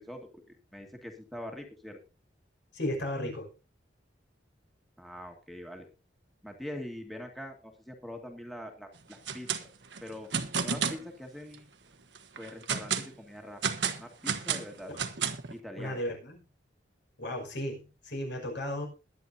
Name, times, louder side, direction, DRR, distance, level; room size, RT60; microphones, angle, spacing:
voice 1, 0.0-2.0 5.0-5.9 6.4-9.5 10.0-10.3 10.6-11.7 12.4-13.6 14.0-14.9 15.5-16.0, left 1 dB, ahead, 2 dB, 2.0 m, -43 dB
voice 2, 2.7-3.5 15.8-16.4 17.2-18.9, left 1 dB, 70° left, 2 dB, 6.0 m, -34 dB
sound 1, 9.1-9.6 9.9-11.0 11.5-11.6 12.2-13.1 13.6-15.5, right 6 dB, 70° right, 1.3 m, -31 dB
21.5 x 9.4 x 2.8 m, 0.31 s
head